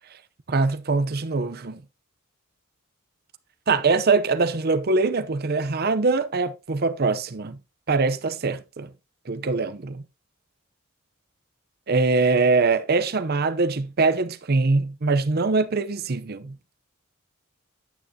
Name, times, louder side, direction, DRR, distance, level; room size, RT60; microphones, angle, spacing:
voice 1, 0.5-1.8 3.7-7.6 7.9-8.9 9.3-10.0 11.9-16.6, right 3 dB, 50° right, 0.6 m, -23 dB
9.3 x 9.0 x 2.7 m
head